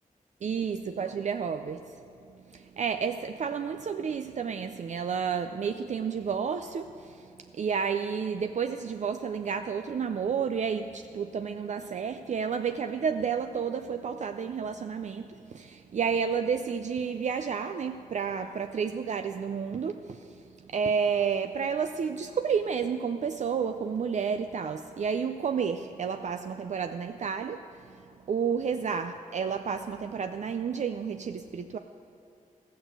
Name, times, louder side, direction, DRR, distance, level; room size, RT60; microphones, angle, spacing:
voice 1, 0.4-2.0 2.3-31.8, right 6 dB, 55° right, 7 dB, 0.4 m, -31 dB
15.5 x 6.2 x 7.9 m, 2.5 s
wide cardioid pair, 115°, 14 cm